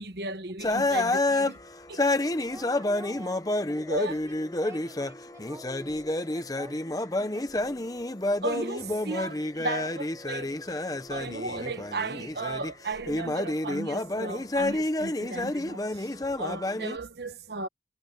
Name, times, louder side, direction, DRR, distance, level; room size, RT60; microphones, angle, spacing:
voice 1, 0.0-1.6 1.9-2.0 3.9-4.2 8.4-17.7, right 2 dB, 65° right, 1.3 m, -35 dB
sound 1, 0.6-12.7 13.0-17.0, left 2 dB, 20° left, 0.8 m, -29 dB
voice 2, 2.3-7.9, right 2 dB, 15° right, 1.4 m, -48 dB
head